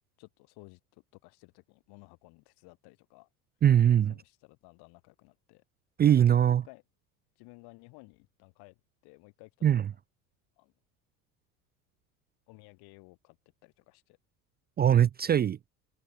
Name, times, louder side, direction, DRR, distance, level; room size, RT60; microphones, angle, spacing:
voice 1, 0.2-3.3 4.1-5.6 6.5-6.8 7.4-8.8 9.0-9.7 10.6-10.7 12.5-13.4 13.6-14.2, left 27 dB, 55° left, 7.7 m, -55 dB
voice 2, 3.6-4.1 6.0-6.6 9.6-9.8 14.8-15.6, right 10 dB, 20° right, 0.6 m, -21 dB
figure-of-eight pair, 70°, 45 cm